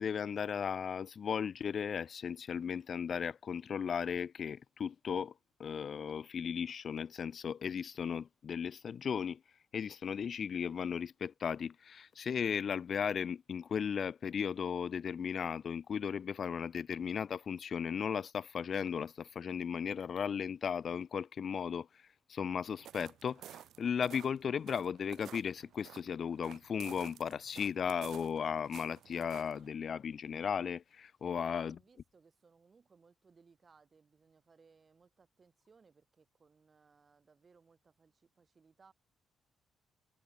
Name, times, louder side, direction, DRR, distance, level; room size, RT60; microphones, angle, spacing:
voice 1, 0.0-5.3 5.6-9.4 9.7-31.8, left 7 dB, 50° left, 0.4 m, -36 dB
sound 1, 22.7-29.7, right 11 dB, 75° right, 1.0 m, -54 dB
voice 2, 31.2-38.9, right 5 dB, 35° right, 5.5 m, -66 dB
cardioid pair, 90°, 0 cm